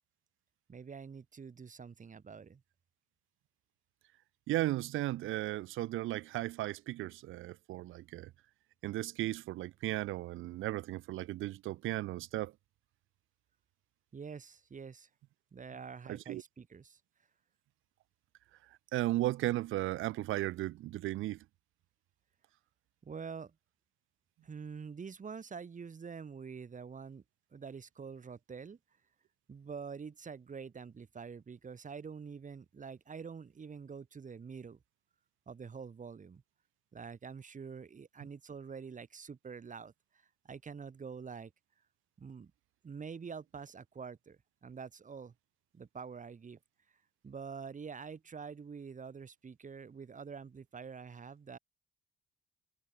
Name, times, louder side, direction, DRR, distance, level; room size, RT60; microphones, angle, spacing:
voice 1, 0.7-2.6 14.1-15.1 15.5-17.0 23.0-23.6 24.4-27.2 27.5-28.8 29.5-34.8 35.5-36.4 36.9-41.5 42.2-42.5 42.8-45.3 45.7-46.6 47.2-51.6, right 6 dB, 40° right, 5.6 m, -46 dB
voice 2, 4.5-8.3 8.8-12.5 16.1-16.4 18.9-21.4, right 16 dB, 85° right, 1.3 m, -35 dB
cardioid pair, 90°, 20 cm